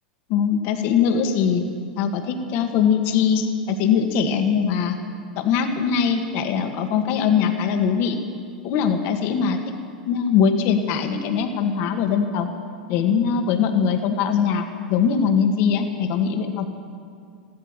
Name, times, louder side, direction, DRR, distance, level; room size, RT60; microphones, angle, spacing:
voice 1, 0.3-1.6 2.0-5.0 5.4-8.2 8.6-9.6 10.1-12.5 12.9-16.7, left 7 dB, 55° left, 5 dB, 1.8 m, -21 dB
14.5 x 13.0 x 7.4 m, 2.2 s
hypercardioid pair, 100°, 5 cm